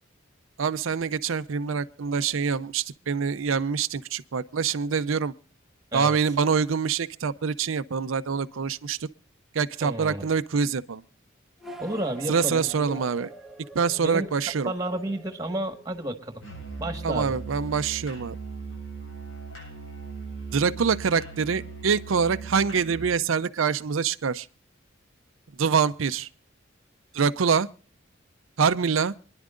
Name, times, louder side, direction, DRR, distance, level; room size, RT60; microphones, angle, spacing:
voice 1, 0.6-5.3 5.9-9.1 9.5-11.0 12.3-13.3 13.7-14.7 17.0-18.3 20.5-24.5 25.6-26.3 27.1-27.7 28.6-29.1, right 6 dB, 80° right, 0.5 m, -25 dB
voice 2, 9.8-10.3 11.8-13.0 14.0-14.3 14.6-16.4 16.8-17.3, right 1 dB, 20° right, 1.6 m, -31 dB
sound 1, 11.6-16.4, right 2 dB, ahead, 0.9 m, -45 dB
Musical instrument, 16.4-23.2, right 4 dB, 75° left, 8.0 m, -39 dB
27.0 x 10.5 x 2.5 m
head